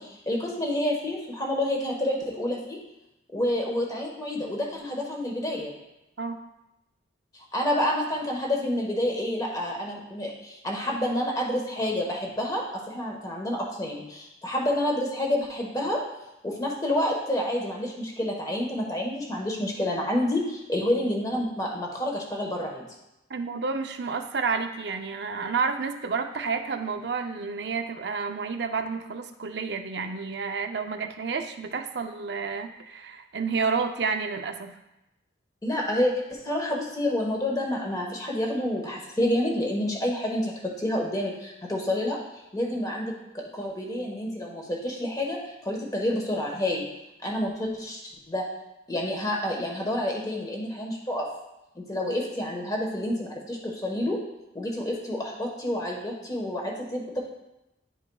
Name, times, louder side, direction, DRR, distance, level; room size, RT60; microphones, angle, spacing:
voice 1, 0.0-2.8 3.3-5.7 7.3-16.0 16.4-22.8 35.6-46.8 47.2-48.0 48.3-48.4 48.9-51.3 51.7-54.2 54.5-57.2, left 1 dB, 20° left, -1 dB, 1.2 m, -29 dB
voice 2, 23.3-34.7, right 5 dB, 60° right, 6 dB, 0.6 m, -30 dB
11.0 x 4.8 x 2.3 m, 0.91 s
head